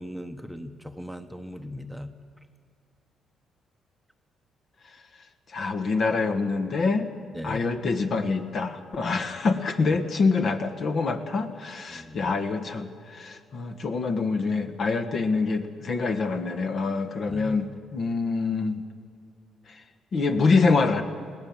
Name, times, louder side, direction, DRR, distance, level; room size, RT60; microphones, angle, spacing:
voice 1, 0.0-2.1 7.3-7.6 11.9-12.3 17.3-17.7, equal, ahead, 6 dB, 1.0 m, -38 dB
voice 2, 5.5-7.1 7.4-18.8 20.1-21.0, left 4 dB, 55° left, 7 dB, 1.5 m, -25 dB
21.5 x 17.5 x 7.4 m, 2.3 s
cardioid pair, 90°, 0 cm